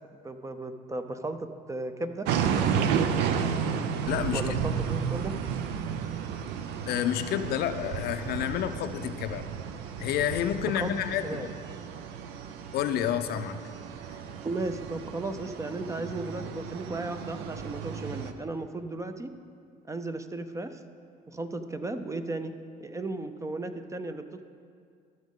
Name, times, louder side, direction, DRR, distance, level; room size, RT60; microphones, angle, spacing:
voice 1, 0.1-2.3 4.3-5.3 10.8-10.9 11.2-11.5 14.4-19.3 19.9-20.8 21.3-22.5 22.8-24.4, right 2 dB, 20° right, 9 dB, 0.5 m, -35 dB
sound 1, 2.2-18.3, right 7 dB, 90° right, 0.6 m, -32 dB
voice 2, 4.1-4.7 6.9-9.4 10.0-11.5 12.7-13.6, left 10 dB, 70° left, 10 dB, 0.5 m, -29 dB
14.5 x 6.3 x 3.6 m, 2.2 s
cardioid pair, 110°, 17 cm